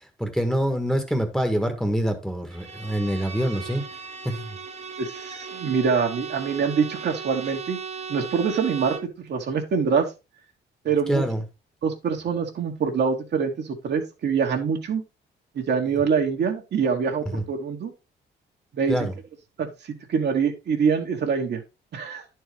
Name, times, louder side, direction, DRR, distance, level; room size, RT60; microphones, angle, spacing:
voice 1, 0.2-3.8 4.2-4.5 11.1-11.4 17.3-17.4 18.9-19.1, equal, 5° left, 1.5 m, -25 dB
Bowed string instrument, 2.5-9.2, right 6 dB, 35° right, 1.1 m, -37 dB
voice 2, 5.0-7.8 8.1-10.1 10.8-11.2 11.8-15.0 15.5-17.9 18.7-19.1 19.6-21.6 21.9-22.2, right 6 dB, 60° right, 1.6 m, -25 dB
10.5 x 4.6 x 3.4 m
cardioid pair, 90°, 20 cm